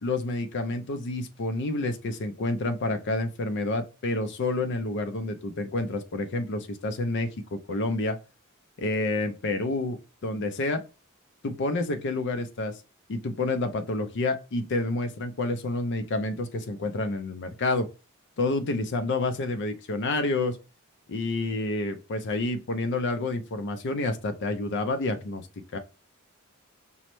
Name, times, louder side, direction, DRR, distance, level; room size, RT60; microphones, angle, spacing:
voice 1, 0.0-8.2 8.8-10.8 11.4-12.8 13.1-17.9 18.4-20.6 21.1-25.5 25.7-25.8, left 2 dB, 55° left, 0.5 m, -29 dB
5.4 x 2.1 x 3.0 m
head